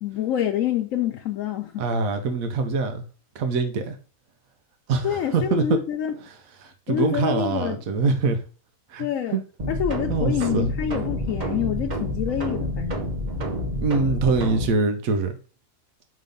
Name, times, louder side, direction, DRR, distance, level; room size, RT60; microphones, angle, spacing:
voice 1, 0.0-1.8 5.0-6.2 6.9-7.8 9.0-9.4 9.7-13.0, left 10 dB, 75° left, 1.0 m, -27 dB
voice 2, 1.8-3.0 3.3-4.0 4.9-5.8 6.3-6.4 6.6-8.4 8.9-9.4 10.1-10.7 13.8-15.4, right 4 dB, 90° right, 1.2 m, -24 dB
sound 1, 9.6-14.7, equal, 35° right, 1.0 m, -28 dB
5.7 x 3.1 x 5.2 m
omnidirectional pair, 1.4 m